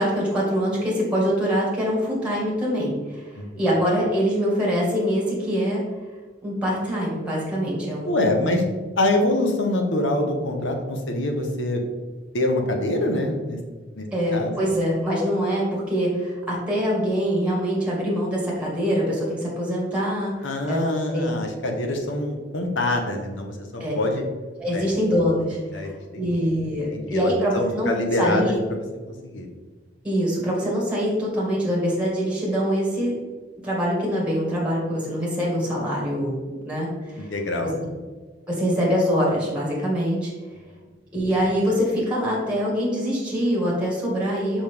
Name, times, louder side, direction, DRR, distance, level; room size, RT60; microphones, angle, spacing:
voice 1, 0.0-3.3 3.5-5.8 6.4-8.6 14.1-20.3 20.7-21.4 23.8-23.9 24.6-27.9 28.2-28.6 30.0-33.1 33.6-37.3 37.6-37.7 38.5-40.3 41.1-44.6, equal, 5° right, -4 dB, 1.9 m, -24 dB
voice 2, 8.1-8.6 9.0-11.8 12.3-13.6 14.0-14.1 14.3-14.6 20.4-24.2 24.7-24.9 25.7-26.4 26.9-29.5 37.3-37.8, left 1 dB, 85° left, 3 dB, 1.0 m, -25 dB
5.5 x 5.1 x 3.5 m, 1.3 s
head